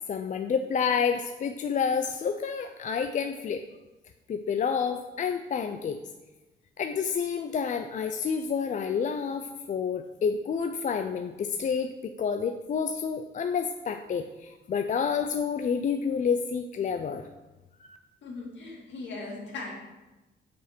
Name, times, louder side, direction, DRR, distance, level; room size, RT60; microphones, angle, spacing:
voice 1, 0.1-3.6 4.3-6.0 6.8-17.2 17.8-18.0, left 6 dB, 40° left, 7 dB, 0.4 m, -29 dB
voice 2, 18.2-19.7, left 3 dB, 65° left, -2 dB, 2.2 m, -38 dB
7.0 x 4.9 x 4.4 m, 1.1 s
cardioid pair, 90°, 20 cm